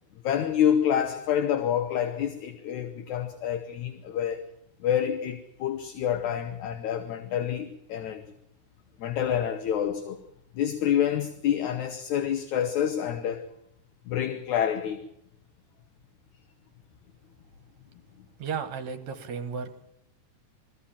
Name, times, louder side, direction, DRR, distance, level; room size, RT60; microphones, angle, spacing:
voice 1, 0.2-4.4 4.8-8.2 9.0-10.2 10.5-13.5 14.1-15.0, left 9 dB, 70° left, 2.3 m, -27 dB
voice 2, 18.4-19.7, right 6 dB, 65° right, 2.4 m, -34 dB
21.5 x 14.0 x 8.7 m
omnidirectional pair, 3.7 m